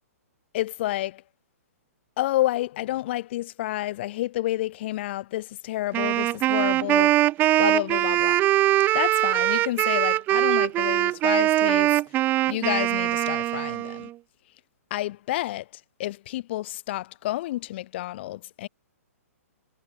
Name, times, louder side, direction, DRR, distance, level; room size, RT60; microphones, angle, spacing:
voice 1, 0.5-1.2 2.2-7.2 7.6-8.4 8.9-12.0 12.4-14.1 14.9-18.7, left 15 dB, 45° left, 2.5 m, -29 dB
Wind instrument woodwind instrument, 5.9-14.1, right 15 dB, 25° right, 2.9 m, -22 dB
hypercardioid pair, 150°, 8 cm